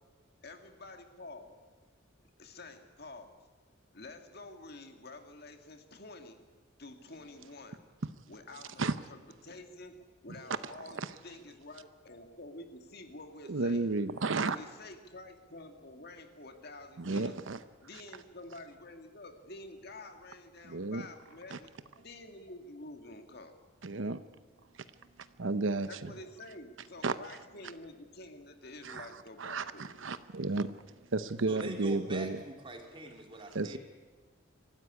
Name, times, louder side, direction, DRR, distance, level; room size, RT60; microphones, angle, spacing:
voice 1, 0.4-1.6 2.4-3.4 3.9-6.4 6.8-7.8 8.3-13.9 14.4-17.4 17.8-23.5 25.9-29.9, left 2 dB, 50° left, 6 dB, 2.0 m, -49 dB
voice 2, 13.5-14.6 17.0-17.6 20.6-21.0 21.5-21.6 23.8-24.2 25.4-26.1 27.0-27.2 28.8-29.1 29.4-30.7 31.1-32.4 33.5-33.8, right 3 dB, 70° right, 12 dB, 0.8 m, -32 dB
voice 3, 31.5-33.8, right 1 dB, 25° right, 3 dB, 3.1 m, -43 dB
24.5 x 14.5 x 9.8 m, 1.4 s
head